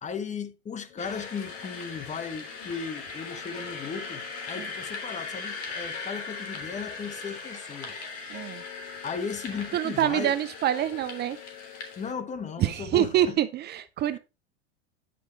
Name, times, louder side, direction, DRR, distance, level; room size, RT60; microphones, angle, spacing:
voice 1, 0.0-8.0 8.6-8.7 9.0-10.4 12.0-13.4 14.1-14.2, left 6 dB, 25° left, 1.2 m, -36 dB
sound 1, 0.9-13.3, left 13 dB, 80° left, 1.1 m, -50 dB
sound 2, 1.0-12.1, left 4 dB, 50° left, 3.2 m, -39 dB
voice 2, 8.3-8.6 9.7-11.4 12.6-14.2, right 12 dB, 35° right, 0.5 m, -26 dB
10.5 x 5.0 x 4.4 m
hypercardioid pair, 100°, 31 cm